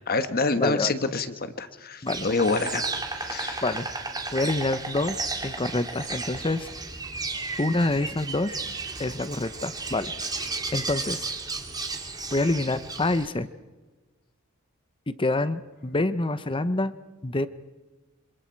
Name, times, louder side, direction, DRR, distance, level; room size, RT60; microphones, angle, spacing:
voice 1, 0.0-2.8 3.2-3.6, left 3 dB, 45° left, 9 dB, 1.4 m, -27 dB
voice 2, 0.6-0.9 2.0-2.3 3.6-3.9 4.3-6.7 7.6-8.6 9.0-10.3 10.7-11.3 12.3-13.5 15.1-16.9 17.2-17.5, left 2 dB, 25° left, 13 dB, 0.8 m, -27 dB
Insect, 2.1-13.3, right 3 dB, 20° right, 2.1 m, -34 dB
27.0 x 25.5 x 4.6 m, 1.3 s
head